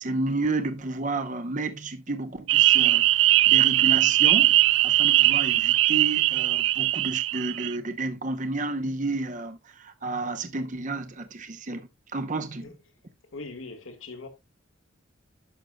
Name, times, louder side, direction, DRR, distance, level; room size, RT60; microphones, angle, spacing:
voice 1, 0.0-11.8 12.1-12.7, right 2 dB, 40° right, 0.8 m, -31 dB
sound 1, 2.5-7.7, right 15 dB, 65° right, 0.3 m, -20 dB
voice 2, 13.3-14.3, left 3 dB, 80° left, 1.6 m, -40 dB
11.5 x 6.5 x 2.2 m
head